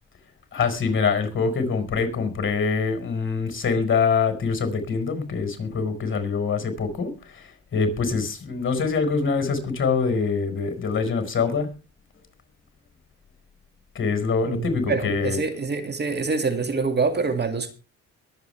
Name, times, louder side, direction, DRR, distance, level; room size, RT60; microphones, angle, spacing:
voice 1, 0.5-11.7 13.9-15.4, left 5 dB, 40° left, 8 dB, 4.8 m, -24 dB
voice 2, 14.5-17.7, right 4 dB, 35° right, 7 dB, 2.1 m, -26 dB
22.5 x 8.3 x 3.3 m, 0.31 s
cardioid pair, 90°, 30 cm